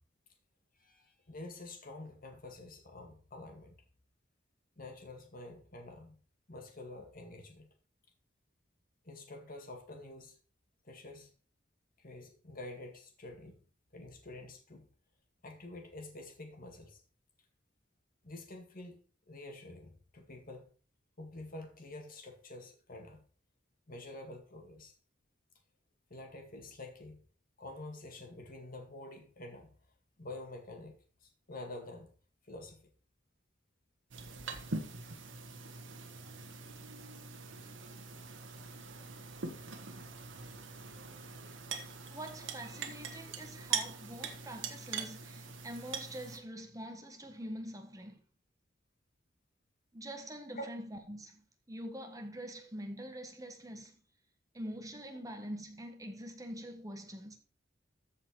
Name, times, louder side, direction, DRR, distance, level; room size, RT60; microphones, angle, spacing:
voice 1, 0.8-3.7 4.8-6.2 6.5-7.7 9.0-10.4 10.8-11.3 12.0-13.6 13.9-14.9 15.4-17.0 18.2-19.0 19.3-20.7 21.2-23.2 23.9-24.9 26.1-27.2 27.6-29.7 30.2-32.1 32.5-32.9 42.1-42.3 50.5-50.7, left 2 dB, 50° left, 2.0 m, -48 dB
sound 1, 34.1-46.4, right 5 dB, 75° right, 1.4 m, -42 dB
voice 2, 41.8-48.2 49.9-53.9 54.5-57.4, equal, 20° right, 1.4 m, -45 dB
14.0 x 4.9 x 4.6 m
head